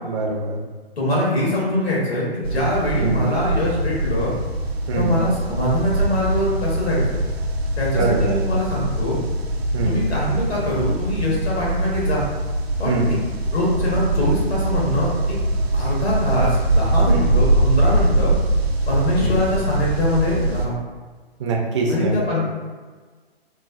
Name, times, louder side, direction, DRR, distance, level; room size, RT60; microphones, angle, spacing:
voice 1, 0.0-0.6 3.0-3.3 4.9-5.2 7.9-8.4 9.7-10.0 12.8-13.1 17.1-17.2 19.2-19.3 21.4-22.1, right 3 dB, 30° right, -1 dB, 0.4 m, -23 dB
voice 2, 1.0-4.3 4.9-7.2 7.8-9.2 9.8-12.2 12.8-13.0 13.5-15.3 15.7-18.3 18.9-20.8 21.9-22.4, left 1 dB, 85° left, -5 dB, 1.3 m, -23 dB
sound 1, 2.4-20.7, right 1 dB, 85° right, 0.5 m, -22 dB
3.1 x 2.2 x 2.5 m, 1.4 s
figure-of-eight pair, 125°, 30 cm